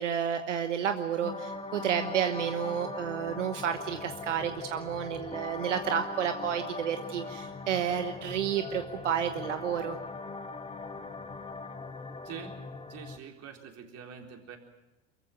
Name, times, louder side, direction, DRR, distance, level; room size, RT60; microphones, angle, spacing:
voice 1, 0.0-10.0, right 8 dB, 90° right, 8 dB, 1.2 m, -31 dB
sound 1, 1.2-13.2, left 3 dB, 15° left, 2.4 m, -41 dB
voice 2, 12.2-12.6 12.9-14.6, right 7 dB, 45° right, 3 dB, 4.0 m, -45 dB
23.5 x 15.0 x 9.2 m, 0.97 s
hypercardioid pair, 85°, 35 cm